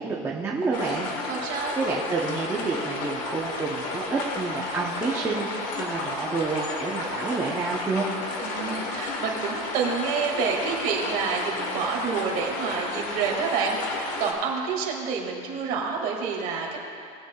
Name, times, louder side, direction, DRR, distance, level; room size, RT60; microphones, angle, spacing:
voice 1, 0.0-1.1 1.8-8.1, right 4 dB, 15° right, -4 dB, 0.8 m, -29 dB
sound 1, 0.7-14.3, left 3 dB, 45° left, 1.4 m, -32 dB
voice 2, 1.3-1.7 8.4-16.8, right 5 dB, 50° right, -1 dB, 2.1 m, -28 dB
19.5 x 8.2 x 2.3 m, 2.5 s
supercardioid pair, 155°, 18 cm